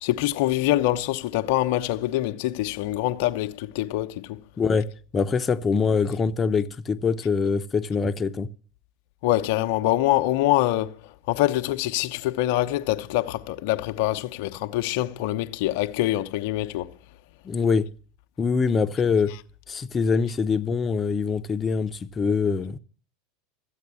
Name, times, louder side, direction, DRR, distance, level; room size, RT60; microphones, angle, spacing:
voice 1, 0.0-4.4 9.2-16.9, left 15 dB, 65° left, 0.9 m, -25 dB
voice 2, 4.6-4.9 5.1-8.5 17.4-17.9 18.4-19.3 19.7-22.8, left 5 dB, 25° left, 1.1 m, -24 dB
14.0 x 8.3 x 9.6 m
hypercardioid pair, 90°, 0 cm